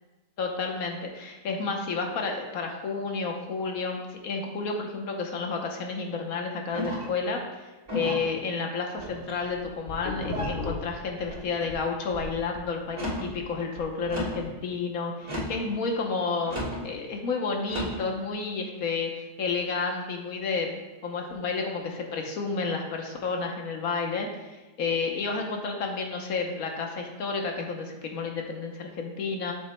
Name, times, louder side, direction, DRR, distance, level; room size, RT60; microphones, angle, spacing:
voice 1, 0.4-7.7 7.9-29.5, left 4 dB, 65° left, 2 dB, 1.3 m, -31 dB
sound 1, 6.7-7.2 7.9-8.3 9.0-9.5 10.2-10.6 11.3-11.7 12.8-13.3 14.1-14.5 15.2-15.7 16.5-16.8 17.6-18.0, equal, 25° right, 2.4 m, -33 dB
sound 2, 9.2-11.8 12.1-14.5, left 2 dB, 90° left, 2.2 m, -37 dB
7.9 x 6.9 x 2.2 m, 1.1 s
omnidirectional pair, 1.7 m